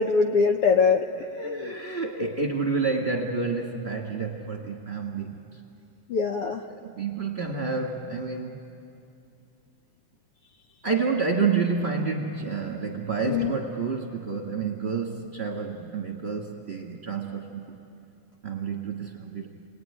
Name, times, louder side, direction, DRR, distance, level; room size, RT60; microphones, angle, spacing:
voice 1, 0.0-1.7 6.1-6.7 13.3-13.5, left 5 dB, 65° left, 5 dB, 1.5 m, -23 dB
voice 2, 1.4-5.4 6.7-8.6 10.8-17.8 18.4-19.5, right 4 dB, 25° right, 1 dB, 1.7 m, -29 dB
28.5 x 20.0 x 9.9 m, 2.6 s
omnidirectional pair, 3.4 m